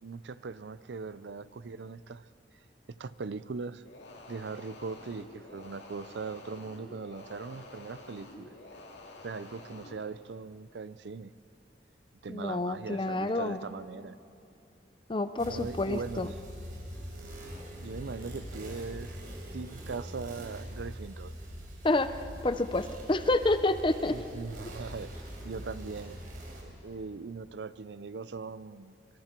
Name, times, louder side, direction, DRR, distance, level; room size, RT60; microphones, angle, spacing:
voice 1, 0.0-2.3 2.9-3.8 4.3-8.5 9.2-11.3 12.2-14.2 15.4-16.4 17.8-19.2 19.5-21.3 24.1-26.2 26.6-29.0, right 4 dB, 80° right, 16 dB, 0.5 m, -40 dB
sound 1, 3.8-10.0, left 2 dB, 85° left, 2.2 m, -49 dB
voice 2, 12.3-13.6 15.1-16.3 21.8-24.2, left 2 dB, 30° left, 11 dB, 0.6 m, -29 dB
sound 2, 15.4-26.6, equal, 50° right, 4.2 m, -43 dB
26.0 x 23.5 x 4.5 m, 2.7 s
head